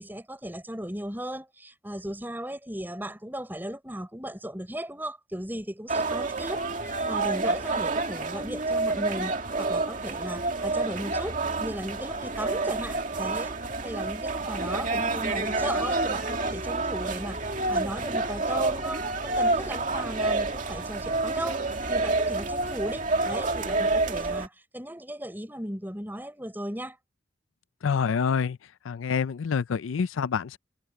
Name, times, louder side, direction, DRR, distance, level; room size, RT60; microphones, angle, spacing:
voice 1, 0.0-27.0, right 1 dB, 10° right, 5.0 m, -36 dB
sound 1, 5.9-24.5, right 3 dB, 40° right, 2.3 m, -28 dB
voice 2, 27.8-28.6 28.9-30.6, left 6 dB, 85° left, 0.4 m, -27 dB
head